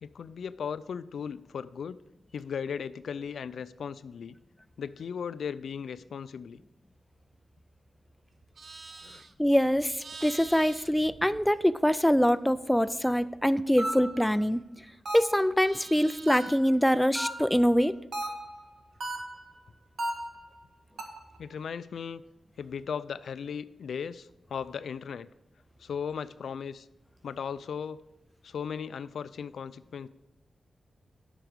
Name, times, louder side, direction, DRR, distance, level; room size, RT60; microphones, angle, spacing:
voice 1, 0.0-2.0 2.3-4.4 4.8-6.6 9.0-9.2 21.4-22.2 22.6-25.3 25.8-26.9 27.2-28.0 28.4-30.1, left 7 dB, 85° left, 15 dB, 0.3 m, -37 dB
Livestock farm animals working animals, 8.3-12.0 12.3-14.9 15.2-16.8, right 4 dB, 50° right, 0.6 m, -48 dB
voice 2, 9.4-14.6 15.1-18.0, equal, 5° left, 13 dB, 0.3 m, -24 dB
sound 1, 13.8-14.3 15.1-15.5 16.3-16.7 17.2-17.6 18.1-18.6 19.0-19.5 20.0-20.5 21.0-21.4, right 1 dB, 65° right, 1.6 m, -35 dB
7.8 x 6.0 x 6.5 m, 0.89 s
wide cardioid pair, 130°, 0 cm